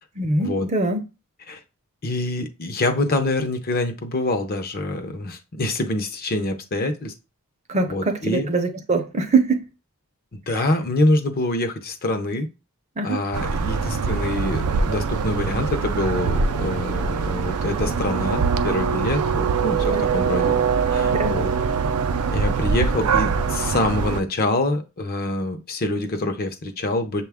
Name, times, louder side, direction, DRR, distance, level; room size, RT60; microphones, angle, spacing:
voice 1, 0.2-1.0 7.7-9.6 10.6-10.7 13.0-13.2 19.9-20.1 21.1-21.4, right 3 dB, 30° right, 0.5 m, -23 dB
voice 2, 2.0-7.1 7.9-8.5 10.3-12.5 13.0-20.6 20.9-21.5 22.3-27.2, left 2 dB, 40° left, 0.6 m, -25 dB
sound 1, 13.3-24.2, right 5 dB, 80° right, 0.4 m, -23 dB
6.5 x 2.3 x 3.5 m
head